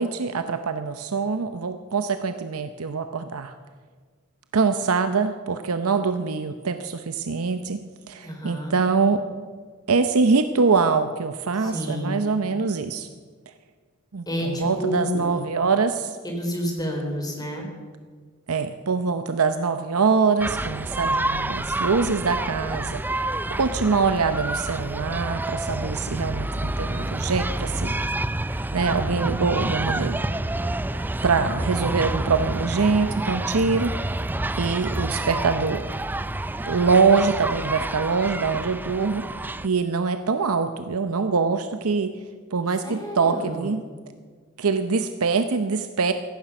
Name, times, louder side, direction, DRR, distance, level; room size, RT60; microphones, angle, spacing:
voice 1, 0.0-3.5 4.5-9.2 9.9-13.1 14.1-16.2 18.5-23.0 23.6-28.0 28.7-30.2 31.2-33.9 34.6-35.8 36.6-39.3 39.6-42.1 42.5-43.8 44.6-46.1, right 4 dB, 75° right, 9 dB, 0.7 m, -24 dB
voice 2, 8.2-8.8 11.5-12.2 14.3-15.3 16.2-17.7 31.3-31.8 42.8-43.8, equal, 20° left, 1 dB, 3.8 m, -30 dB
sound 1, 20.4-39.7, right 1 dB, 10° right, 0.4 m, -28 dB
17.0 x 14.5 x 6.0 m, 1.5 s
head